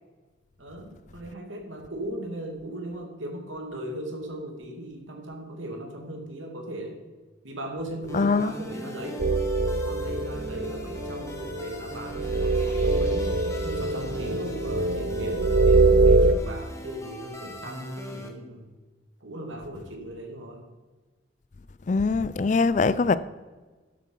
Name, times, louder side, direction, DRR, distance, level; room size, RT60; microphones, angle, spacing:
voice 1, 0.6-7.0 7.4-9.3 9.8-18.7 19.2-20.7, right 1 dB, 90° right, 2.3 m, -38 dB
voice 2, 8.1-8.5 21.9-23.2, left 4 dB, 40° left, 0.4 m, -22 dB
sound 1, 8.1-18.3, left 1 dB, 15° left, 1.2 m, -40 dB
sound 2, 9.2-16.3, right 3 dB, 65° right, 0.6 m, -23 dB
12.0 x 7.8 x 4.6 m
head